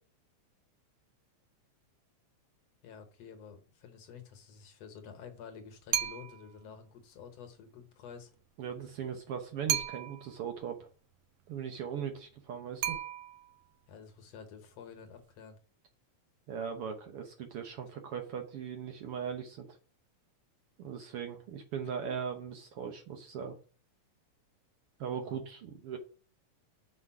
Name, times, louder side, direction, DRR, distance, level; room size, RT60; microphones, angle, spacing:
voice 1, 2.8-8.3 13.9-15.6 25.2-25.4, left 6 dB, 65° left, 6 dB, 2.0 m, -50 dB
sound 1, 5.9-6.5 9.7-10.4 12.8-13.6, right 11 dB, 80° right, 1.3 m, -34 dB
voice 2, 8.6-10.9 11.5-13.0 16.5-19.7 20.8-23.6 25.0-26.0, right 7 dB, 65° right, 5 dB, 1.5 m, -39 dB
6.1 x 5.2 x 5.8 m, 0.39 s
omnidirectional pair, 3.4 m